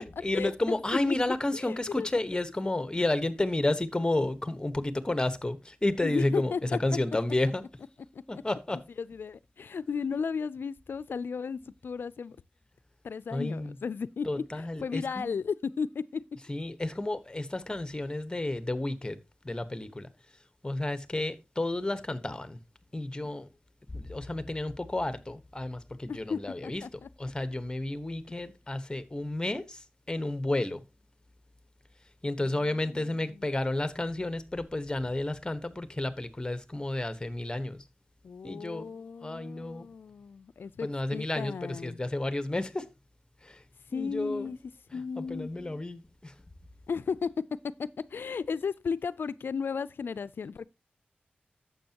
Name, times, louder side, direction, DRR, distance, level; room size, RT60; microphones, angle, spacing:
voice 1, 0.0-7.6 8.3-8.8 13.3-13.8 14.2-15.3 16.5-19.2 19.4-20.1 20.6-22.6 22.9-23.5 23.9-30.8 32.2-37.8 38.4-38.9 39.2-39.9 40.8-42.9 43.4-43.6 43.9-44.5 44.9-46.3, left 2 dB, 20° left, 1.1 m, -31 dB
voice 2, 1.6-2.1 2.7-2.8 6.0-6.8 8.1-8.4 9.0-12.4 13.0-16.2 26.1-27.1 32.4-33.4 38.2-42.0 43.9-44.6 44.9-45.5 46.9-47.3 47.8-50.7, left 5 dB, 75° left, 0.4 m, -35 dB
11.5 x 7.7 x 2.9 m
cardioid pair, 60°, 4 cm